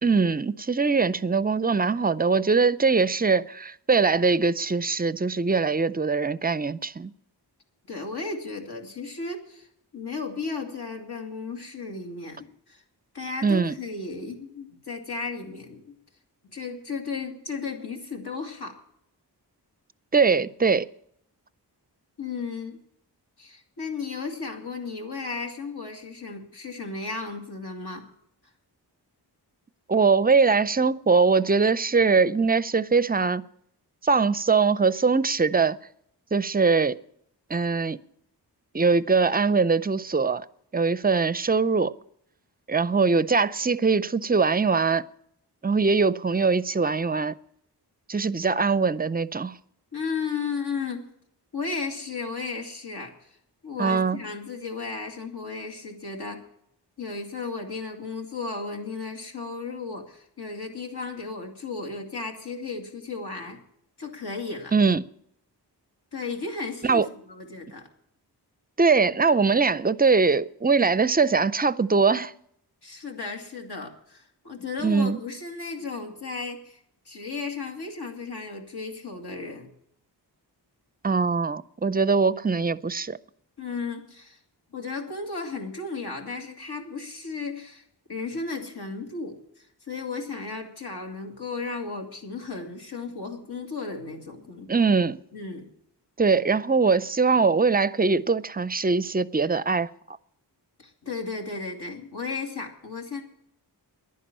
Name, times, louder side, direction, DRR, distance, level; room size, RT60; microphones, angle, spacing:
voice 1, 0.0-7.1 13.4-13.8 20.1-20.9 29.9-33.5 34.0-35.8 36.3-37.0 37.5-38.0 38.7-40.5 40.7-41.9 42.7-45.0 45.6-47.4 48.1-49.6 53.8-54.2 64.7-65.0 66.8-67.1 68.8-72.3 74.8-75.2 81.0-83.2 94.7-95.2 96.2-99.9, right 4 dB, 20° right, 0.4 m, -22 dB
voice 2, 7.9-9.7 9.9-12.8 13.1-16.0 16.5-18.8 22.2-22.8 23.4-28.1 49.9-51.1 51.5-53.4 53.6-56.4 57.0-63.6 64.0-64.7 66.1-67.9 72.8-76.8 77.1-79.7 83.6-84.4 84.7-87.8 88.1-94.7 95.3-95.7 100.8-103.2, left 4 dB, 65° left, 2.5 m, -34 dB
11.0 x 10.0 x 8.7 m
wide cardioid pair, 75°, 41 cm